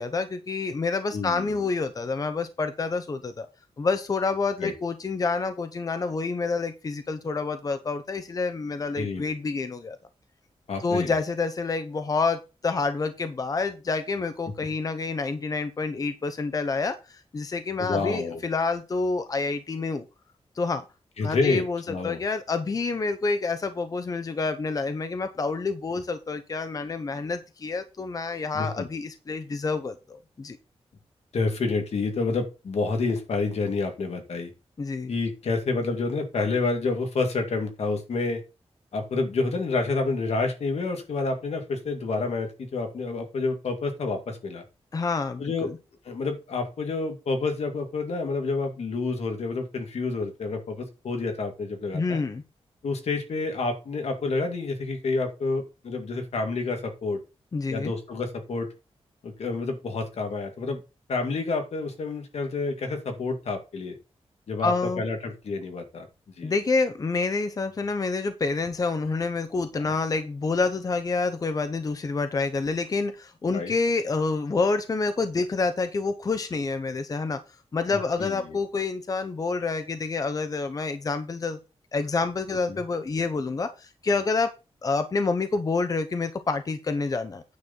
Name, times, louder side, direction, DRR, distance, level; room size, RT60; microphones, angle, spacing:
voice 1, 0.0-3.5 3.8-10.0 10.8-20.1 20.6-20.8 21.2-30.6 34.8-35.1 44.9-45.8 51.9-52.4 57.5-57.9 64.6-65.0 66.4-77.4 77.7-81.6 81.9-84.5 84.8-87.4, left 4 dB, 35° left, 9 dB, 0.7 m, -28 dB
voice 2, 1.1-1.7 4.6-4.7 9.0-9.2 10.7-11.1 17.8-18.4 21.2-22.2 28.5-28.9 31.3-34.5 35.1-38.4 38.9-44.6 45.4-45.7 46.1-52.2 52.8-57.2 57.7-58.7 59.2-60.8 61.1-64.0 64.5-66.1 66.4-66.5 69.8-69.9 73.5-73.7 77.9-78.6 82.7-82.8, left 3 dB, 80° left, 4 dB, 2.2 m, -29 dB
9.5 x 4.0 x 7.1 m, 0.29 s
wide cardioid pair, 180°, 11 cm